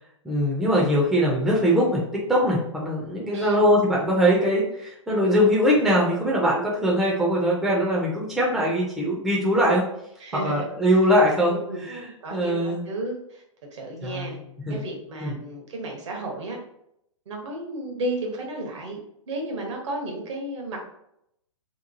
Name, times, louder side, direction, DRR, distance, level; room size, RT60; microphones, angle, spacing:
voice 1, 0.2-9.9 10.4-12.8 14.0-14.4 14.7-14.8 15.2-15.4, equal, ahead, -4 dB, 0.4 m, -22 dB
voice 2, 3.3-3.6 10.2-10.6 11.5-11.8 12.2-13.4 13.7-14.4 14.7-16.6 17.3-20.8, right 2 dB, 60° right, 1 dB, 0.9 m, -32 dB
2.9 x 2.2 x 2.6 m, 0.76 s
hypercardioid pair, 130°, 17 cm